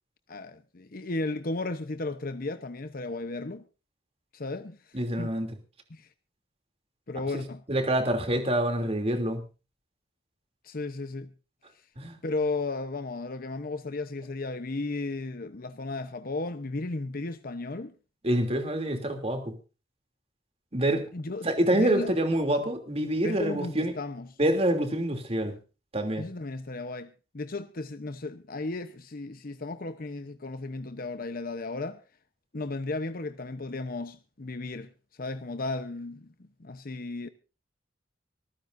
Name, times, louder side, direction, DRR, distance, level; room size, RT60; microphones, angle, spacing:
voice 1, 0.3-3.6 4.3-4.8 5.2-5.3 5.9-6.1 7.1-7.6 10.6-11.3 12.2-17.9 21.1-22.1 23.2-24.3 26.2-32.0 32.5-34.9 35.2-37.3, left 2 dB, 50° left, 0.9 m, -34 dB
voice 2, 4.9-5.5 7.3-7.4 7.7-9.4 12.0-12.2 18.2-19.5 20.7-21.1 21.4-23.9 24.4-25.5 25.9-26.2, right 1 dB, 35° right, 2.9 m, -26 dB
25.0 x 14.5 x 2.6 m
head